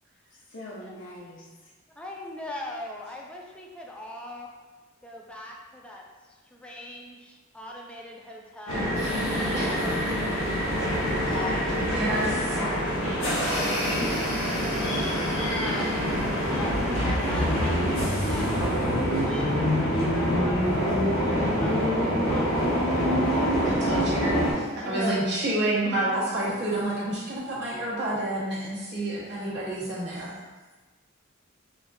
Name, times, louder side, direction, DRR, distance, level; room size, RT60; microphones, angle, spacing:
voice 1, 0.5-1.5 11.2-11.8 24.8-25.2 26.1-26.2, equal, 60° left, -6 dB, 0.6 m, -36 dB
voice 2, 2.0-4.5 5.0-6.0 6.5-9.5 13.0-13.3 15.4-16.1 16.4-18.9 19.2-20.6 21.3-23.6, left 1 dB, 5° left, -2 dB, 0.4 m, -40 dB
sound 1, 8.7-24.5, equal, 85° left, 1.1 m, -25 dB
voice 3, 11.9-12.7 23.6-30.3, right 1 dB, 55° right, -8 dB, 1.1 m, -29 dB
5.1 x 2.4 x 2.6 m, 1.3 s
head